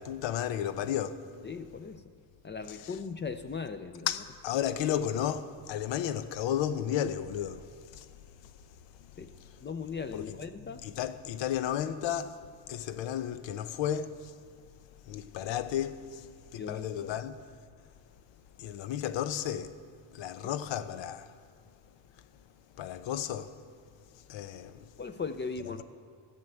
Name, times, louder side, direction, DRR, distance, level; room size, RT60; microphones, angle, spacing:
voice 1, 0.0-1.5 2.7-3.0 4.1-8.1 9.2-9.6 10.1-10.4 10.7-12.4 12.7-14.4 15.1-16.3 16.5-17.4 18.6-19.7 20.1-21.4 22.8-23.6 24.3-24.9, left 10 dB, 80° left, 0.8 m, -33 dB
voice 2, 1.4-2.0 2.4-4.1 9.2-9.3 9.6-10.8 16.6-17.1 20.4-20.5 25.0-25.8, left 5 dB, 25° left, 0.5 m, -38 dB
14.0 x 7.7 x 9.1 m
cardioid pair, 125°, 44 cm